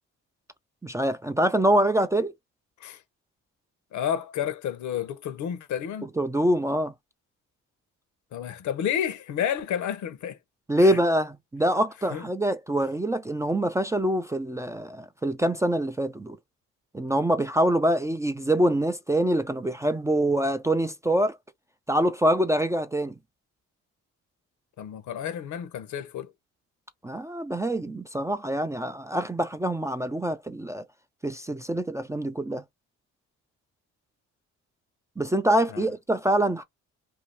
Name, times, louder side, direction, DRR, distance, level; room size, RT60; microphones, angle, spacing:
voice 1, 0.8-2.3 6.2-6.9 10.7-16.4 16.9-21.4 21.9-23.1 27.0-30.8 31.2-32.6 35.2-36.6, right 1 dB, 10° right, 0.4 m, -25 dB
voice 2, 3.9-6.1 8.3-10.4 10.8-11.0 12.1-12.3 24.8-26.3 35.7-35.9, left 9 dB, 75° left, 0.8 m, -31 dB
2.7 x 2.4 x 3.2 m
cardioid pair, 90°, 30 cm